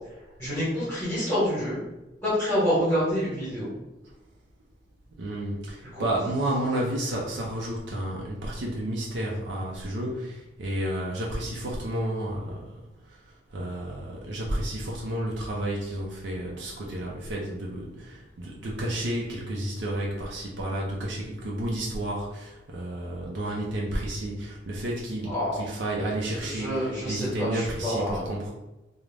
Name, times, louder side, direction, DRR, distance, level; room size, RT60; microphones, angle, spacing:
voice 1, 0.4-1.8 2.2-3.7 5.8-6.0 25.3-25.6 26.4-28.3, equal, 15° left, -11 dB, 1.2 m, -27 dB
voice 2, 5.2-12.7 13.1-13.2 13.5-28.5, right 1 dB, 65° right, -2 dB, 0.4 m, -31 dB
2.4 x 2.0 x 3.2 m, 1.0 s
head